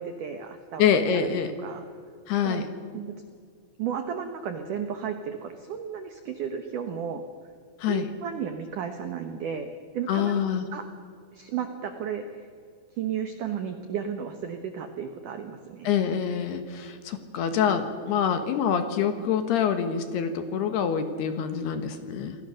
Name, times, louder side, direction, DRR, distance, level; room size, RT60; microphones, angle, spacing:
voice 1, 0.0-1.2 1.6-1.9 2.4-2.6 2.9-3.2 3.8-7.2 7.9-9.7 9.9-10.4 10.7-10.9 11.3-12.5 13.0-15.9, right 7 dB, 90° right, 7 dB, 1.8 m, -33 dB
voice 2, 0.8-1.5 2.3-2.7 7.8-8.1 10.1-10.7 15.8-22.4, left 8 dB, 65° left, 8 dB, 3.1 m, -26 dB
28.5 x 20.5 x 6.5 m, 2.2 s
omnidirectional pair, 5.6 m